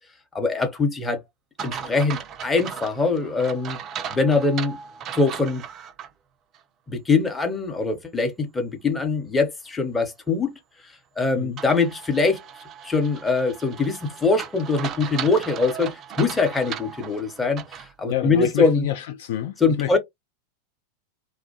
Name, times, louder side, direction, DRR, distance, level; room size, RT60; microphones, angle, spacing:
voice 1, 0.3-1.2 1.6-3.8 4.1-4.8 5.1-5.6 6.9-10.6 11.2-12.4 12.8-18.9 19.6-20.0, left 4 dB, 10° left, 0.8 m, -23 dB
sound 1, 1.6-6.1 6.5-6.6 11.6-17.9, right 8 dB, 30° right, 0.3 m, -37 dB
voice 2, 18.0-20.0, left 12 dB, 55° left, 0.3 m, -28 dB
2.5 x 2.1 x 2.8 m
figure-of-eight pair, 90°, 0 cm